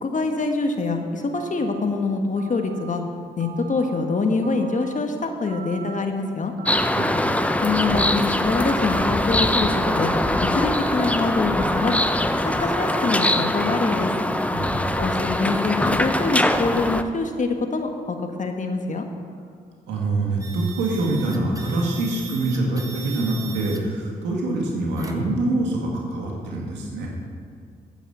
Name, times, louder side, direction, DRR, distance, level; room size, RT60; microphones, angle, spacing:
voice 1, 0.0-3.0 3.4-6.5 7.6-10.1 10.5-12.0 12.4-14.1 15.0-19.1, left 3 dB, 45° left, 5 dB, 1.5 m, -25 dB
Telephone, 1.3-1.8 2.4-2.9 3.4-4.0 4.4-5.0 5.5-6.0 6.6-7.2 7.6-8.2 8.6-9.1 9.7-10.2 10.6-11.1 11.6-12.1 12.6-13.1, right 7 dB, 60° right, 0.9 m, -40 dB
sound 1, 6.7-17.0, left 1 dB, 5° left, 0.7 m, -22 dB
voice 2, 7.0-7.4 14.5-15.0 19.9-27.1, right 2 dB, 85° right, -1 dB, 2.1 m, -25 dB
sound 2, 20.4-23.8 25.0-25.4, right 5 dB, 20° right, 1.6 m, -39 dB
9.0 x 8.5 x 7.0 m, 2.1 s
supercardioid pair, 50°, 18 cm